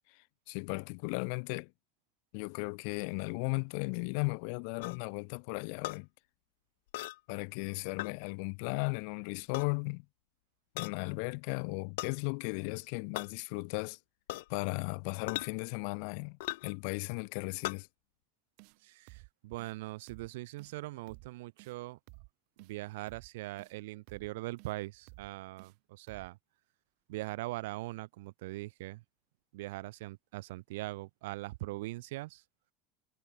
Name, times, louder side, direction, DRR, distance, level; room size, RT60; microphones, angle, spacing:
voice 1, 0.5-1.7 2.3-6.1 7.3-10.0 10.7-14.0 14.5-16.4 16.6-17.9, left 40 dB or more, 60° left, 0.4 m, -36 dB
sound 1, 4.8-5.0 5.8-6.0 6.9-7.2 8.0-8.1 9.4-9.7 10.8-11.0 12.0-12.1 13.1-13.3 14.3-14.5 15.3-15.5 16.4-16.7 17.6-17.8, left 20 dB, 90° left, 1.1 m, -38 dB
sound 2, 18.6-18.8 19.1-19.3 19.6-19.7 20.1-20.3 20.6-20.8 21.1-21.3 21.6-21.8 22.1-22.3 22.6-22.7 23.1-23.3 23.6-23.8 24.1-24.3 24.6-24.7 25.1-25.3 25.6-25.8 26.1-26.3, right 38 dB, 60° right, 4.8 m, -54 dB
voice 2, 18.8-22.0 22.6-26.4 27.1-29.0 29.5-32.4, right 19 dB, 90° right, 2.0 m, -41 dB
cardioid pair, 165°, 0 cm